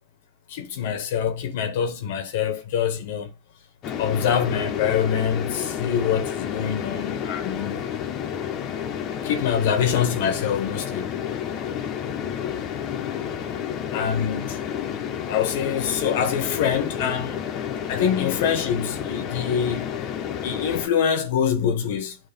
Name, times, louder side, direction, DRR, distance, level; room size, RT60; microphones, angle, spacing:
voice 1, 0.5-3.3 4.0-7.8 9.2-11.1 13.9-14.6 15.3-17.5 17.9-19.9 20.4-22.2, left 8 dB, 70° left, 1.2 m, -25 dB
sound 1, 3.8-20.9, left 8 dB, 40° left, 1.1 m, -30 dB
9.1 x 3.1 x 5.3 m
hypercardioid pair, 115°, 0 cm